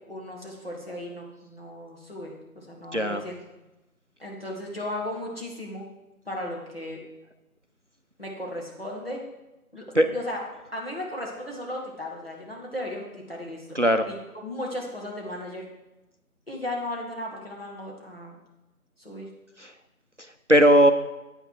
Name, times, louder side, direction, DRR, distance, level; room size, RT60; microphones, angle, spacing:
voice 1, 0.1-3.3 4.2-5.9 6.3-7.0 8.2-9.2 9.7-10.4 10.7-13.7 14.1-14.2 14.4-15.6 16.5-18.4 19.0-19.3, left 1 dB, 40° left, -2 dB, 2.3 m, -35 dB
voice 2, 2.9-3.2 9.9-10.1 13.7-14.0 19.6-19.7 20.2-20.9, equal, 55° right, 8 dB, 0.6 m, -19 dB
9.2 x 9.1 x 4.6 m, 0.98 s
figure-of-eight pair, 180°, 45 cm